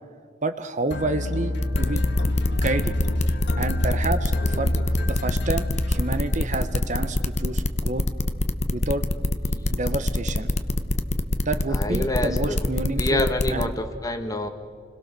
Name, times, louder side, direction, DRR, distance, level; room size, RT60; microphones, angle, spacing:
voice 1, 0.4-2.0 2.5-2.9 3.6-4.8 5.1-8.0 8.7-9.0 9.7-10.5 11.4-13.7, right 2 dB, 40° right, 10 dB, 1.0 m, -29 dB
sound 1, 0.9-6.6, left 1 dB, 65° left, 1.5 m, -27 dB
sound 2, 1.6-13.6, left 1 dB, 35° left, 0.9 m, -24 dB
voice 2, 4.5-5.1 9.5-9.7 11.7-12.6 13.0-14.5, left 1 dB, 20° left, 7 dB, 1.4 m, -28 dB
28.0 x 21.5 x 6.8 m, 2.1 s
head